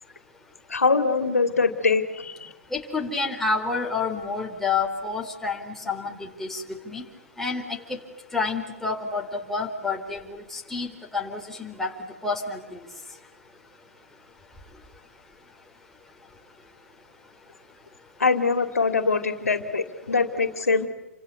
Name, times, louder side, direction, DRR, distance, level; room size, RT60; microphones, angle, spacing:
voice 1, 0.7-2.5 18.2-20.9, left 4 dB, 85° left, 9 dB, 2.6 m, -23 dB
voice 2, 2.7-7.0 7.4-7.8 8.3-11.9 12.2-12.8, left 4 dB, 5° left, 0 dB, 3.7 m, -29 dB
29.0 x 25.0 x 8.3 m, 1.0 s
figure-of-eight pair, 120°, 8 cm